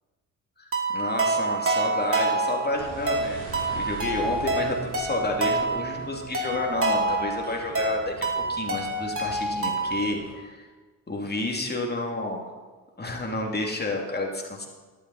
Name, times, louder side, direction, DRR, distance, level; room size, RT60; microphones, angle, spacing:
sound 1, 0.7-10.1, right 2 dB, 30° right, 2.6 m, -27 dB
voice 1, 0.9-3.4 3.7-10.7 11.1-12.5 13.0-14.7, left 2 dB, 25° left, 1 dB, 2.9 m, -30 dB
sound 2, 2.7-10.3, right 4 dB, 80° right, 4.3 m, -42 dB
13.0 x 11.5 x 4.2 m, 1.4 s
hypercardioid pair, 50°, 41 cm